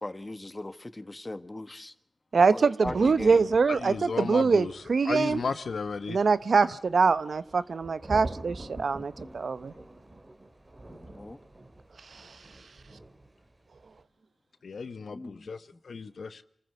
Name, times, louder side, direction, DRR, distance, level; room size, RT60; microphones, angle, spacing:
voice 1, 0.0-1.9 2.5-3.5 10.8-11.4 15.1-15.8, left 2 dB, 30° left, 1.5 m, -40 dB
voice 2, 2.3-5.4 6.1-9.7, right 4 dB, 75° right, 0.8 m, -24 dB
Thunder, 2.8-13.4 13.7-14.0, right 1 dB, 35° right, 2.7 m, -45 dB
voice 3, 3.7-4.7 5.0-6.2 14.6-15.6 15.8-16.4, left 5 dB, 80° left, 1.1 m, -34 dB
27.5 x 14.5 x 8.1 m
cardioid pair, 50°, 0 cm